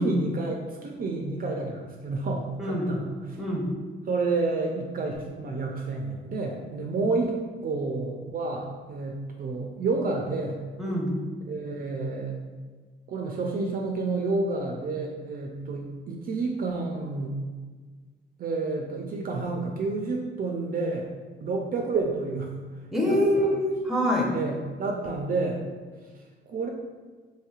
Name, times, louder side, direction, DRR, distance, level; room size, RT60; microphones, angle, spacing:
voice 1, 0.0-3.4 4.1-10.6 11.5-12.4 13.1-17.4 18.4-21.1 21.4-22.5 23.0-23.5 24.3-25.6 26.5-26.7, right 3 dB, 45° right, 1 dB, 0.4 m, -30 dB
voice 2, 2.6-3.0 3.4-3.7 10.8-11.3 22.9-24.3, equal, ahead, -2 dB, 0.6 m, -25 dB
3.1 x 2.9 x 2.3 m, 1.4 s
cardioid pair, 90°, 20 cm